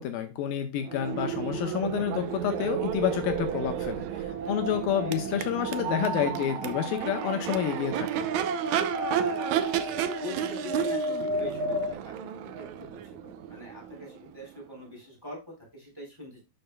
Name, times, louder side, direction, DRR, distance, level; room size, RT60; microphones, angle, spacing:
voice 1, 0.0-8.3, left 10 dB, 75° left, 6 dB, 2.5 m, -29 dB
Crowd / Race car auto racing / Accelerating revving vroom, 0.8-14.7, right 10 dB, 90° right, 1.6 m, -33 dB
sound 1, 2.4-11.9, right 1 dB, 45° right, 2.9 m, -34 dB
voice 2, 4.4-5.3 9.1-9.6 9.8-11.8 12.0-15.4 15.7-16.4, left 1 dB, 5° right, -1 dB, 3.3 m, -44 dB
12.0 x 6.7 x 2.3 m, 0.28 s
omnidirectional pair, 4.3 m